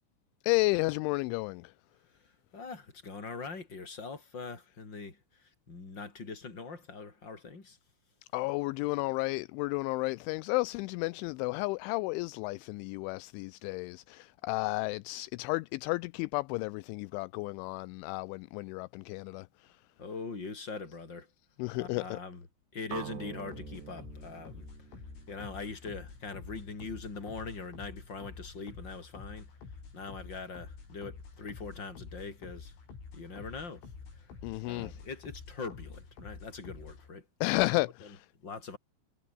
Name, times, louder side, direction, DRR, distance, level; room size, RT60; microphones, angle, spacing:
voice 1, 0.4-1.7 8.3-19.8 21.6-22.2 34.4-35.0 37.4-38.3, left 23 dB, 85° left, 2.7 m, -32 dB
voice 2, 2.1-7.8 20.0-21.3 21.8-22.4 22.7-24.7 24.9-25.0 25.3-29.5 29.9-32.7 33.1-34.4 34.6-37.2 38.4-38.8, left 4 dB, 20° left, 4.8 m, -42 dB
sound 1, 22.9-26.9, right 12 dB, 65° right, 3.5 m, -47 dB
sound 2, 23.5-37.1, left 5 dB, 70° left, 10.0 m, -48 dB
omnidirectional pair, 5.9 m